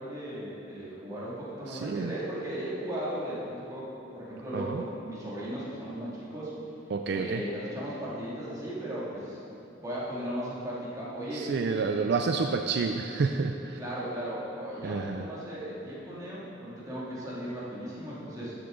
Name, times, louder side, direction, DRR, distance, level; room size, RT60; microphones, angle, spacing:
voice 1, 0.0-6.5 7.1-9.4 9.8-11.5 12.4-12.5 13.8-18.5, right 1 dB, 20° right, -8 dB, 2.3 m, -36 dB
voice 2, 1.7-2.1 4.5-4.8 6.9-7.4 11.3-13.8 14.8-15.3, right 4 dB, 60° right, 5 dB, 0.4 m, -29 dB
13.0 x 6.8 x 3.8 m, 3.0 s
head